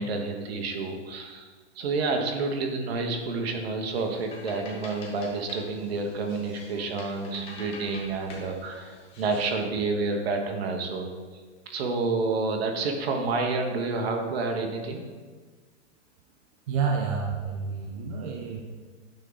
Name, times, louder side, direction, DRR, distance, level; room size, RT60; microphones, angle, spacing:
voice 1, 0.0-1.5 1.7-11.1 11.7-15.0, right 3 dB, 55° right, 3 dB, 1.2 m, -29 dB
sound 1, 4.0-9.6, left 2 dB, 15° left, 0.8 m, -46 dB
voice 2, 16.7-18.6, right 5 dB, 30° right, 0 dB, 0.5 m, -29 dB
9.1 x 3.7 x 4.0 m, 1.4 s
supercardioid pair, 165°, 36 cm